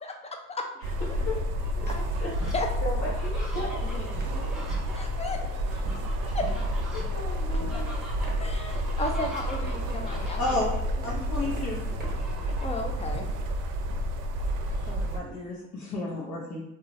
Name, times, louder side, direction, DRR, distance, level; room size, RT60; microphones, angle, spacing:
voice 1, 0.0-0.7 1.8-2.0 2.5-2.7 4.9-5.6 5.9-6.5 7.7-7.8 8.4-10.4 12.6-13.3, left 2 dB, 20° left, 3 dB, 0.4 m, -34 dB
voice 2, 0.8-1.8 2.2-2.5 2.8-4.9 6.9-7.9 11.0-11.2 12.2-12.5 14.6-14.9, left 2 dB, 45° left, -8 dB, 0.9 m, -38 dB
sound 1, 0.8-15.2, equal, 85° right, 0.5 m, -30 dB
Fowl, 1.4-2.5 3.0-10.8 11.8-12.8 13.3-13.4 13.7-15.5, right 1 dB, ahead, 0.8 m, -46 dB
sound 2, 1.8-13.1, right 2 dB, 35° right, 0.8 m, -45 dB
voice 3, 10.4-10.7 11.0-11.8 14.9-16.6, left 2 dB, 70° left, -5 dB, 0.8 m, -32 dB
2.9 x 2.3 x 2.6 m, 0.89 s
cardioid pair, 90°, 30 cm